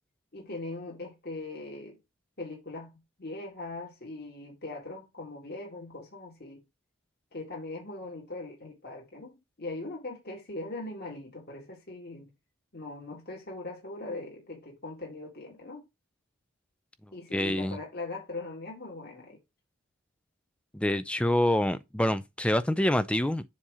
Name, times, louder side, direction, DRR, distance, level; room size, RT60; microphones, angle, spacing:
voice 1, 0.3-2.0 2.4-2.9 3.2-6.6 7.3-12.3 12.7-15.8 17.1-19.4, left 2 dB, 45° left, 1.9 m, -40 dB
voice 2, 17.3-17.8 20.7-23.4, left 1 dB, 5° left, 0.3 m, -26 dB
7.4 x 2.8 x 4.8 m
head